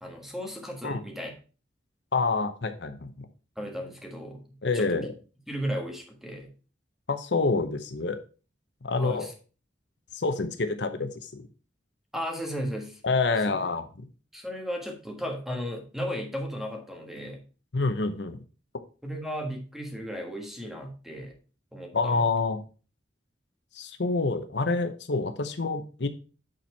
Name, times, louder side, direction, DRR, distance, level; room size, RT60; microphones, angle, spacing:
voice 1, 0.0-1.3 3.6-4.4 4.7-5.1 5.5-6.5 9.0-9.3 12.1-13.0 13.5-13.7 14.3-17.4 19.0-21.4 21.7-22.3, equal, ahead, 2 dB, 1.5 m, -35 dB
voice 2, 2.1-3.3 4.6-5.1 7.1-8.2 8.8-9.3 10.1-11.4 13.0-14.1 17.7-18.4 21.9-22.6 23.7-26.1, left 3 dB, 70° left, 8 dB, 0.8 m, -27 dB
8.9 x 4.4 x 4.5 m, 0.35 s
head